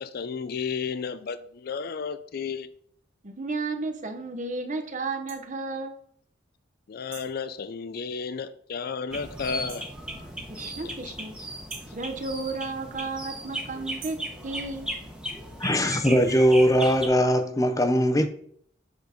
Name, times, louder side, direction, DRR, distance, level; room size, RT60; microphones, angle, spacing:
voice 1, 0.0-2.7 6.9-9.9 10.6-11.2 11.9-12.0, left 5 dB, 55° left, 0.4 m, -33 dB
voice 2, 3.2-6.0 10.5-11.3 11.9-14.2 14.4-14.9, right 3 dB, 40° right, 1.0 m, -33 dB
sound 1, 5.3-5.4 7.1-7.4 9.7-10.0 11.7-12.0 14.0-14.3, right 7 dB, 80° right, 2.2 m, -44 dB
sound 2, 9.1-17.1, right 1 dB, 5° right, 1.1 m, -37 dB
voice 3, 15.6-18.3, equal, 15° left, 0.7 m, -20 dB
8.0 x 4.0 x 5.1 m
head